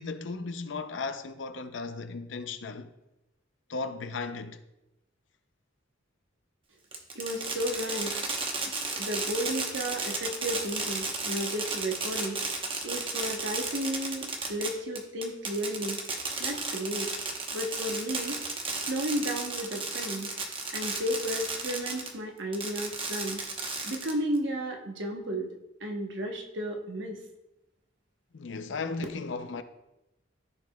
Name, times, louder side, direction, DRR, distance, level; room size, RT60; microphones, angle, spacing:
voice 1, 0.0-2.9 3.7-4.6 28.3-29.6, left 4 dB, 70° left, 0.6 m, -36 dB
Fireworks, 6.9-22.1 22.5-24.4, right 3 dB, 25° right, 0.9 m, -33 dB
voice 2, 7.1-8.1 8.9-12.4 12.8-16.0 16.4-17.1 17.5-18.4 18.8-20.3 20.7-23.4 23.8-25.5 25.8-27.2, equal, 65° right, 1.1 m, -33 dB
14.5 x 4.9 x 2.3 m
head